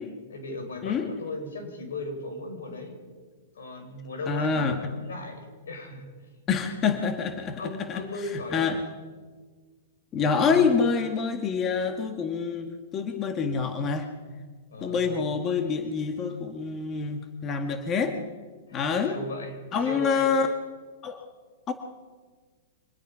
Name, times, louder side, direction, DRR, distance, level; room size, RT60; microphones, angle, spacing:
voice 1, 0.3-3.0 3.5-6.1 7.6-8.8 14.7-15.2 18.7-20.3, left 2 dB, 80° left, 4 dB, 6.1 m, -37 dB
voice 2, 4.3-4.8 6.5-8.0 8.5-8.8 10.1-14.1 14.8-18.2 18.7-19.2 19.7-20.5 21.0-21.2 21.7-21.8, left 5 dB, 30° left, 6 dB, 1.8 m, -26 dB
25.0 x 19.5 x 5.7 m, 1.4 s
hypercardioid pair, 125°, 0 cm